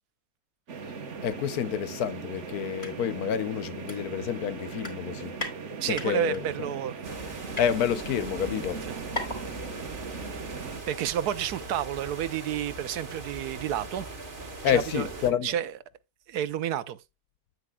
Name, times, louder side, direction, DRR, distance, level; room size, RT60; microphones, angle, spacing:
sound 1, 0.7-10.8, right 5 dB, 50° right, 1.3 m, -39 dB
voice 1, 1.2-5.4 5.9-6.5 7.6-8.8 14.6-15.5, left 9 dB, 75° left, 1.2 m, -28 dB
sound 2, 2.8-2.9 3.3-3.4 3.9-4.4 4.7-5.5 5.9-6.4 7.0-7.7 8.4-8.5 8.7-8.8 9.1-9.4 9.8-9.9, left 1 dB, 30° left, 3.5 m, -36 dB
voice 2, 5.8-7.0 8.9-9.0 10.0-10.5 10.9-14.1 14.7-15.1 15.4-15.7 16.3-17.0, right 10 dB, 75° right, 1.2 m, -30 dB
sound 3, 7.0-15.3, right 3 dB, 35° right, 1.4 m, -40 dB
9.7 x 9.2 x 2.3 m
omnidirectional pair, 1.7 m